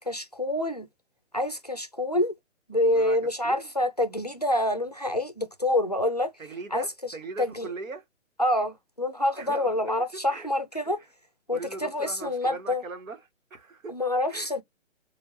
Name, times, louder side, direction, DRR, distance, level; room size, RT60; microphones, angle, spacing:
voice 1, 0.1-0.9 1.3-2.3 2.7-6.3 6.7-6.8 7.4-7.7 8.4-11.0 11.5-12.8 13.9-14.6, left 1 dB, 35° left, 0.4 m, -27 dB
voice 2, 2.9-3.7 6.4-8.0 9.3-11.1 11.5-14.0 14.3-14.5, right 3 dB, 90° right, 1.5 m, -40 dB
4.4 x 2.5 x 2.9 m
hypercardioid pair, 170°, 39 cm